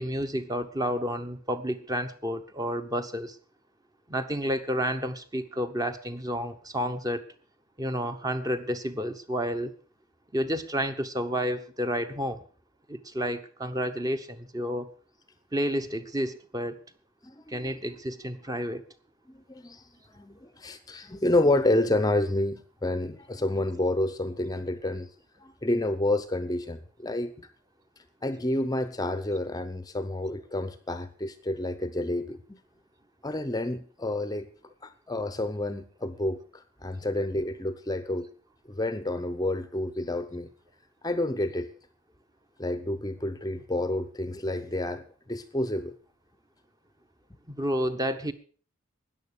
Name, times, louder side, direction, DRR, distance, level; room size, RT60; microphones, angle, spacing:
voice 1, 0.0-3.4 4.1-7.2 7.8-9.7 10.3-12.4 12.9-14.9 15.5-16.8 17.5-18.8 47.5-48.3, equal, 15° right, 0.9 m, -30 dB
voice 2, 17.2-17.7 19.3-19.8 20.1-25.1 25.4-27.3 28.2-32.6 33.2-34.5 34.8-38.3 38.7-40.5 41.0-41.7 42.6-46.0, left 1 dB, 20° left, 0.7 m, -29 dB
14.0 x 9.7 x 6.6 m
head